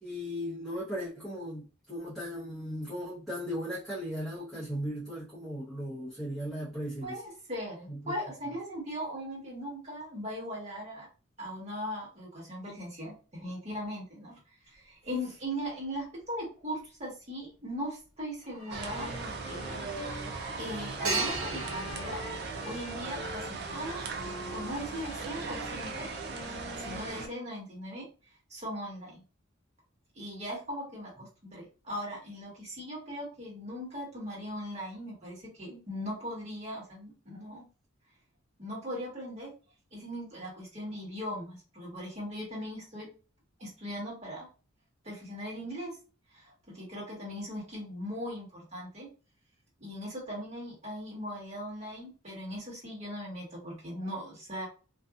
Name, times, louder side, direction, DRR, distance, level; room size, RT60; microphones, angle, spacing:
voice 1, 0.0-7.2 7.9-8.1, equal, ahead, 0.8 m, -37 dB
voice 2, 7.0-11.1 11.4-14.4 14.6-19.9 20.6-22.2 22.6-24.1 24.5-26.1 26.4-26.5 26.8-28.1 28.5-29.2 30.1-37.6 38.6-39.5 39.9-43.1 43.6-44.5 45.0-46.0 46.3-49.1 49.8-54.7, equal, 35° right, 1.5 m, -39 dB
sound 1, 15.7-15.8 18.4-23.2, right 3 dB, 85° right, 1.1 m, -38 dB
sound 2, 18.7-27.3, right 4 dB, 55° right, 0.4 m, -38 dB
Wind instrument woodwind instrument, 18.9-27.6, left 2 dB, 30° left, 0.3 m, -45 dB
2.6 x 2.3 x 2.4 m
head